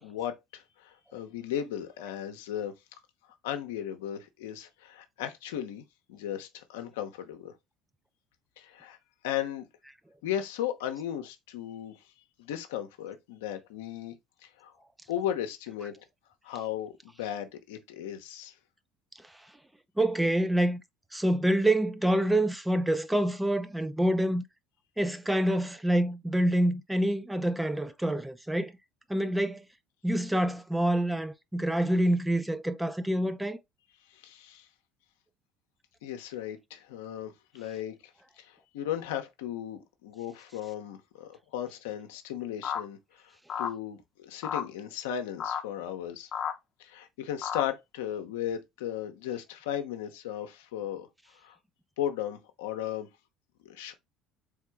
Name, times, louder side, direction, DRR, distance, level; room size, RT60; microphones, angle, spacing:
voice 1, 0.0-2.7 3.4-5.8 6.1-7.5 8.6-9.0 9.2-9.7 10.2-11.9 12.4-14.1 14.4-14.7 15.1-16.0 16.4-18.5 34.1-34.7 36.0-37.9 38.4-46.3 46.8-51.1 51.4-51.6 52.0-53.1 53.6-53.9, left 10 dB, 90° left, 0.7 m, -36 dB
voice 2, 20.0-20.8 21.1-24.4 25.0-28.7 29.1-29.7 30.0-33.6, right 1 dB, 10° right, 0.5 m, -26 dB
sound 1, 42.6-42.8 43.5-43.7 44.4-44.7 45.4-45.6 46.3-46.5 47.4-47.6, left 8 dB, 45° left, 0.7 m, -32 dB
3.7 x 3.5 x 3.4 m
supercardioid pair, 80°, 0 cm